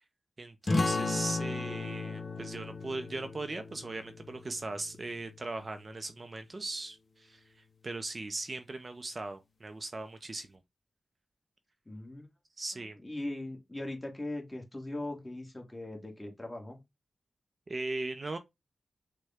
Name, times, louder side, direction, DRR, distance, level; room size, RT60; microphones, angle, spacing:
voice 1, 0.4-10.6 12.6-13.0 17.7-18.4, right 2 dB, 40° right, 0.5 m, -39 dB
sound 1, 0.7-5.9, left 3 dB, 40° left, 0.6 m, -35 dB
voice 2, 11.9-12.3 13.0-16.8, left 1 dB, 15° left, 1.4 m, -39 dB
6.3 x 2.2 x 3.4 m
wide cardioid pair, 95°, 0 cm